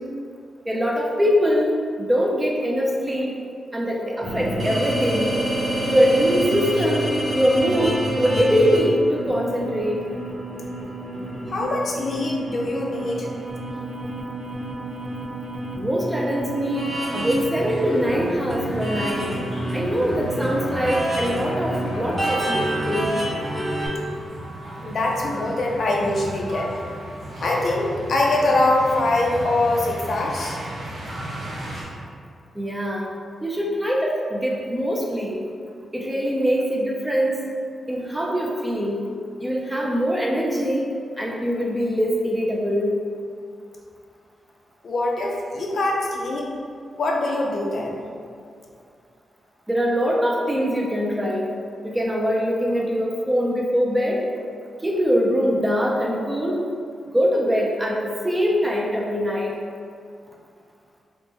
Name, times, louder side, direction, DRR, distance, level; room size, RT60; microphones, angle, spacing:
voice 1, 0.7-3.3 3.7-5.3 5.8-10.0 15.8-19.3 19.7-23.1 32.6-33.1 33.4-35.4 35.9-37.4 37.9-39.0 39.4-40.9 41.2-43.0 49.7-51.5 51.8-54.2 54.8-56.6 57.1-59.5, equal, 10° right, -2 dB, 0.4 m, -23 dB
sound 1, 4.2-23.9, right 1 dB, 25° right, 1.0 m, -28 dB
voice 2, 11.5-13.3 24.8-26.7 27.4-30.6 44.8-46.5 47.0-48.0, left 2 dB, 50° left, -1 dB, 0.5 m, -23 dB
sound 2, 17.1-31.8, right 1 dB, 65° right, 1.2 m, -36 dB
3.4 x 2.1 x 4.0 m, 2.2 s
wide cardioid pair, 150°, 0 cm